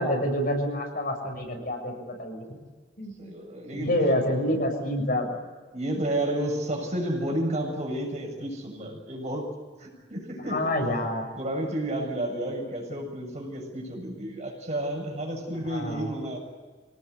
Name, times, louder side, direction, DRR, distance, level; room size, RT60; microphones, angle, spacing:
voice 1, 0.0-1.9 2.2-2.4 3.0-3.3 3.7-5.3 10.5-11.3 15.7-16.1, left 1 dB, 55° left, 2 dB, 7.0 m, -27 dB
voice 2, 3.2-3.9 5.7-9.5 9.8-10.7 11.4-16.4, right 1 dB, 40° right, 1 dB, 7.2 m, -31 dB
26.0 x 19.0 x 9.7 m, 1.4 s
head